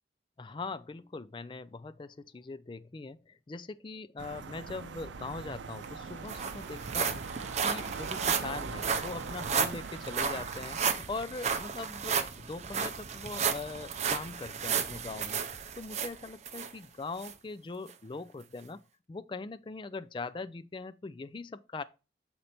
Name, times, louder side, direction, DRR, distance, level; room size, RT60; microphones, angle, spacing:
voice 1, 0.4-15.4 15.8-18.8 19.1-21.8, left 3 dB, 25° left, 0.3 m, -41 dB
sound 1, 4.2-10.9, right 5 dB, 85° right, 0.5 m, -42 dB
sound 2, 5.5-5.6 5.8-16.7 17.2-17.3 17.9-18.0, right 6 dB, 35° right, 0.5 m, -33 dB
6.6 x 4.4 x 4.2 m
head